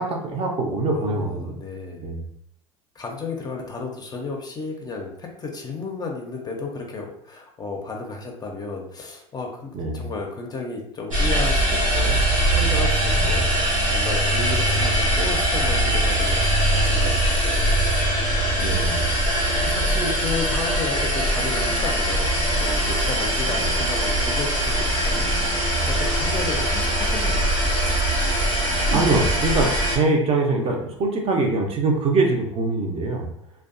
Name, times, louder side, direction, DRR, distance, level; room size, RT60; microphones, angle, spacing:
voice 1, 0.0-1.6 2.0-2.2 9.7-10.1 13.1-13.3 18.6-19.1 28.9-33.3, right 3 dB, 35° right, 1 dB, 0.6 m, -23 dB
voice 2, 0.9-2.1 3.0-12.2 12.5-13.5 13.9-18.8 19.6-22.3 22.6-27.5, left 4 dB, 25° left, 1 dB, 0.5 m, -33 dB
sound 1, 11.1-30.0, right 1 dB, 90° right, 0.9 m, -21 dB
2.5 x 2.2 x 2.5 m, 0.70 s
hypercardioid pair, 75°, 16 cm